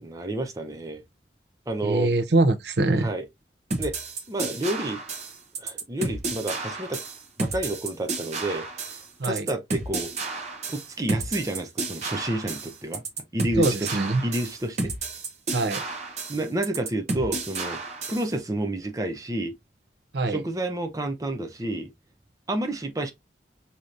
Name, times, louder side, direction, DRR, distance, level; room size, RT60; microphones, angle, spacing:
voice 1, 0.0-1.0 1.7-2.1 3.0-3.2 3.8-3.9 4.3-5.0 5.6-7.0 7.4-8.7 9.2-10.1 10.7-13.0 13.3-14.9 16.3-17.8 18.1-19.5 20.3-21.9 22.5-23.1, right 1 dB, 20° right, 0.5 m, -30 dB
voice 2, 1.8-3.1 9.2-9.5 13.6-14.2 15.5-15.8 20.1-20.4, right 2 dB, 70° right, 0.6 m, -23 dB
sound 1, 3.7-18.3, right 3 dB, 40° right, 0.9 m, -32 dB
4.8 x 2.8 x 2.4 m
head